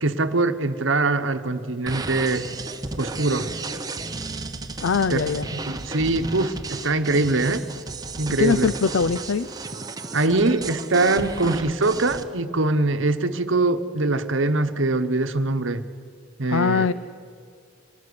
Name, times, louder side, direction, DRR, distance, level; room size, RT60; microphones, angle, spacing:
voice 1, 0.0-2.5 3.0-3.5 5.1-5.2 5.7-7.6 8.2-8.7 10.1-15.8 16.4-16.9, right 2 dB, 65° right, 10 dB, 1.1 m, -23 dB
sound 1, 1.9-12.2, right 3 dB, 20° right, 0.9 m, -33 dB
voice 2, 4.8-5.5 8.4-9.5 16.5-16.9, left 5 dB, 70° left, 15 dB, 0.5 m, -22 dB
24.5 x 13.5 x 9.7 m, 2.2 s
head